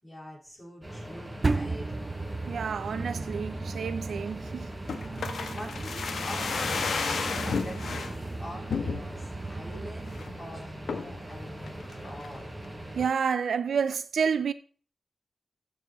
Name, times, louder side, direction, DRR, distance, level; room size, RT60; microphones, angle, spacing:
voice 1, 0.0-2.0 4.8-12.5, left 1 dB, 20° left, 6.1 m, -45 dB
sound 1, 0.8-13.1, right 1 dB, 25° right, 5.4 m, -42 dB
sound 2, 1.4-10.2, right 3 dB, 40° right, 0.6 m, -35 dB
voice 2, 2.5-4.7 13.0-14.5, right 6 dB, 90° right, 0.6 m, -29 dB
sound 3, 4.9-8.1 8.7-9.3 9.7-9.8 10.1-10.4 10.9-11.2 11.7-12.4 12.6-12.7, left 5 dB, 90° left, 1.0 m, -32 dB
14.5 x 6.9 x 3.1 m
cardioid pair, 60°, 0 cm